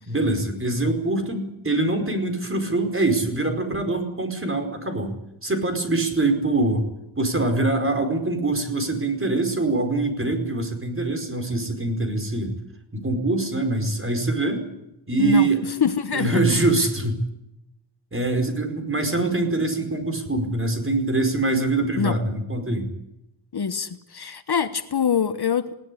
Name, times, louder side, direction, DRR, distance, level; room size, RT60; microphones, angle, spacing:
voice 1, 0.1-5.1 5.4-6.8 7.2-12.5 12.9-14.7 15.1-15.6 16.1-17.2 18.1-22.9, right 2 dB, 25° right, 6 dB, 4.9 m, -24 dB
voice 2, 15.8-16.6 19.2-19.3 22.0-22.1 23.5-25.7, left 7 dB, 50° left, 11 dB, 1.2 m, -25 dB
21.0 x 18.0 x 10.0 m, 0.87 s
wide cardioid pair, 120°, 48 cm